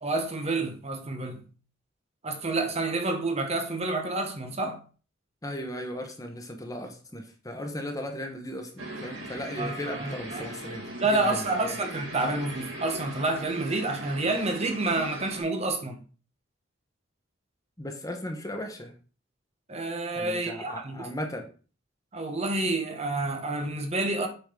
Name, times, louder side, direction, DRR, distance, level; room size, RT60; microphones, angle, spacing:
voice 1, 0.0-1.4 2.2-4.8 9.6-10.5 11.0-16.0 19.7-21.1 22.1-24.3, right 2 dB, 30° right, 1.1 m, -29 dB
voice 2, 5.4-11.8 17.8-18.9 20.1-21.5, left 1 dB, 15° left, 1.2 m, -37 dB
sound 1, 8.8-15.4, right 1 dB, 85° right, 2.2 m, -39 dB
8.1 x 4.1 x 5.2 m
head